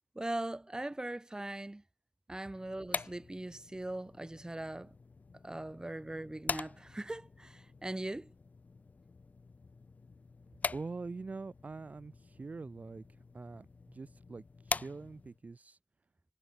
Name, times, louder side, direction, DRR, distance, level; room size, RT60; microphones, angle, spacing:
voice 1, 0.1-1.8 2.3-4.9 5.4-8.3, right 1 dB, 30° right, 2.3 m, -40 dB
sound 1, 2.5-15.4, left 4 dB, 80° left, 0.6 m, -44 dB
voice 2, 10.7-13.0 13.3-15.8, right 3 dB, 70° right, 1.0 m, -44 dB
wide cardioid pair, 60°, 3 cm